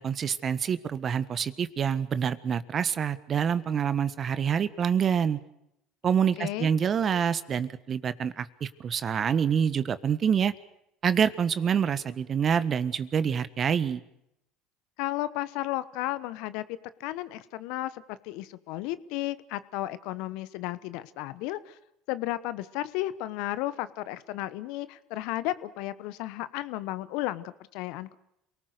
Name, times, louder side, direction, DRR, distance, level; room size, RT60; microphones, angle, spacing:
voice 1, 0.0-5.4 6.0-10.5 11.0-14.0, right 7 dB, 40° right, 14 dB, 1.5 m, -26 dB
voice 2, 6.4-6.7 15.0-16.6 17.0-21.8 22.1-28.1, left 16 dB, 70° left, 15 dB, 1.1 m, -33 dB
28.0 x 19.0 x 6.7 m, 0.80 s
hypercardioid pair, 75°, 0 cm